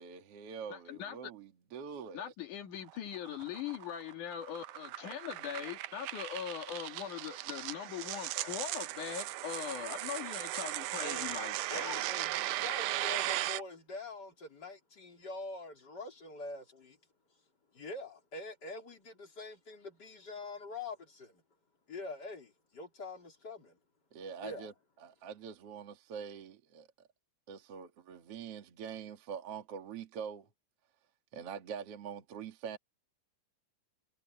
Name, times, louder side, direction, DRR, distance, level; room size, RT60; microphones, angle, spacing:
voice 1, 0.0-2.3 24.1-24.7 25.0-26.9 27.5-30.5 31.3-32.8, right 7 dB, 50° right, 2.7 m, -44 dB
voice 2, 0.7-1.3 2.1-12.1, left 9 dB, 75° left, 3.6 m, -41 dB
sound 1, 2.9-13.6, right 16 dB, 80° right, 2.2 m, -37 dB
voice 3, 11.0-11.4 11.7-17.0 17.7-21.4 21.9-23.8 24.4-24.7, left 2 dB, 30° left, 4.0 m, -45 dB
omnidirectional pair, 3.6 m